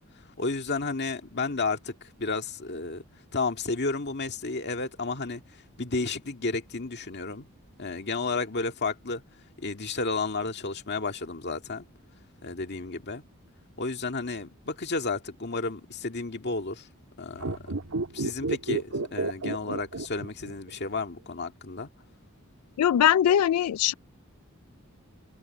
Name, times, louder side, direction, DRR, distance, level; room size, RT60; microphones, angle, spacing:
voice 1, 0.4-3.0 3.3-5.4 5.8-7.5 7.8-9.2 9.6-11.9 12.4-13.2 13.8-16.9 17.2-17.6 18.1-21.9, left 3 dB, 50° left, 2.0 m, -32 dB
sound 1, 17.3-20.7 21.0-21.1, right 2 dB, 90° right, 1.9 m, -31 dB
voice 2, 22.8-23.9, left 10 dB, 85° left, 0.3 m, -21 dB
head